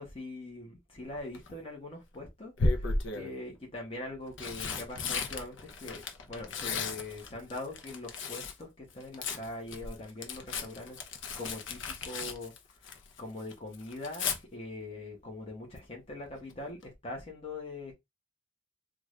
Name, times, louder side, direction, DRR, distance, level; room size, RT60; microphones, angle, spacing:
voice 1, 0.0-12.9 13.2-17.9, left 2 dB, 30° left, 1.0 m, -42 dB
Tearing, 1.1-1.5 2.6-3.3 4.1-8.6 8.9-13.2 13.5-14.4 16.2-16.5 16.8-16.9, left 3 dB, 75° left, 0.7 m, -35 dB
3.5 x 2.4 x 3.2 m
head